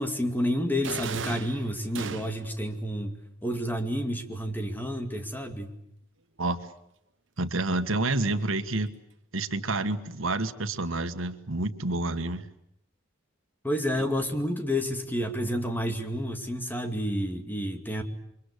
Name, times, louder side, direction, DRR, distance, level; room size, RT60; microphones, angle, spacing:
voice 1, 0.0-3.2 3.4-5.7 13.6-18.0, equal, 10° left, 6 dB, 2.4 m, -30 dB
sound 1, 0.8-2.6, right 5 dB, 65° right, 1.2 m, -37 dB
voice 2, 7.4-8.9 9.3-12.5 14.0-14.1, right 2 dB, 90° right, 9 dB, 1.7 m, -29 dB
29.0 x 24.0 x 8.3 m, 0.75 s
head